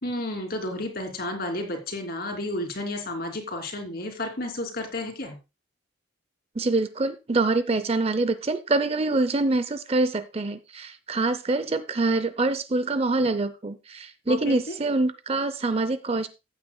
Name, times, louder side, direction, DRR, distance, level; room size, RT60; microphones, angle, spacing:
voice 1, 0.0-5.4 14.3-14.7, left 1 dB, 50° left, 2.9 m, -32 dB
voice 2, 6.6-16.3, right 2 dB, 30° right, 0.5 m, -25 dB
15.0 x 8.5 x 2.2 m
head